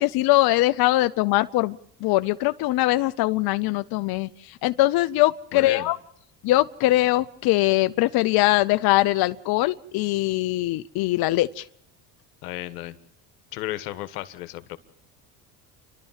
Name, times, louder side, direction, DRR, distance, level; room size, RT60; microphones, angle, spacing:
voice 1, 0.0-4.3 4.6-6.0 6.4-11.6, left 17 dB, 55° left, 13 dB, 0.7 m, -22 dB
voice 2, 5.5-5.9 12.4-13.0 13.5-14.8, left 15 dB, 90° left, 12 dB, 1.4 m, -33 dB
29.5 x 12.0 x 7.4 m, 0.75 s
supercardioid pair, 90°, 45 cm